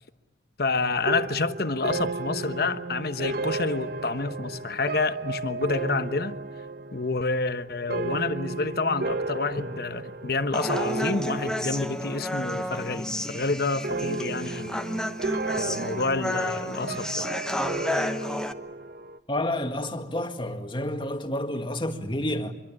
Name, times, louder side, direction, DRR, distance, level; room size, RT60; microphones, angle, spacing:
voice 1, 0.6-6.4 6.9-14.8 15.6-17.3, left 3 dB, 55° left, 1.1 m, -28 dB
sound 1, 1.1-12.5 12.8-13.4 13.8-19.2, right 3 dB, 55° right, 1.0 m, -34 dB
Human voice, 10.5-18.5, left 1 dB, 5° left, 1.0 m, -31 dB
voice 2, 19.3-22.5, left 1 dB, 25° left, 1.9 m, -29 dB
25.5 x 23.0 x 8.7 m
head